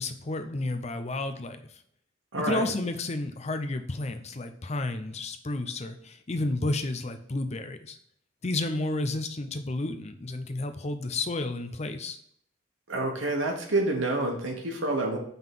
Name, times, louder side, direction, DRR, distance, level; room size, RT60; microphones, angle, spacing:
voice 1, 0.0-1.6 2.4-8.0 8.4-12.2, left 2 dB, 35° left, 8 dB, 0.6 m, -31 dB
voice 2, 2.3-2.7 12.9-15.2, right 2 dB, 80° right, 0 dB, 1.2 m, -28 dB
5.4 x 3.8 x 5.9 m, 0.65 s
head